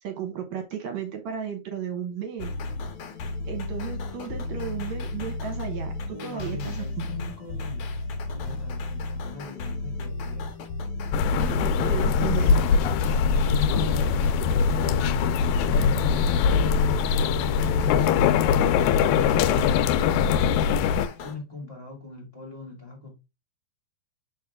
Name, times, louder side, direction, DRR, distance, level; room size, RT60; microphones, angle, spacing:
voice 1, 0.0-2.5 3.5-7.1 11.3-12.7, right 8 dB, 70° right, 2.2 m, -34 dB
sound 1, 2.4-21.4, left 3 dB, 65° left, 1.5 m, -34 dB
voice 2, 6.1-10.5 15.7-17.0 17.3-23.2, left 3 dB, 20° left, 2.2 m, -40 dB
sound 2, 11.1-21.1, left 6 dB, 80° left, 1.8 m, -22 dB
6.4 x 4.5 x 3.5 m
omnidirectional pair, 3.5 m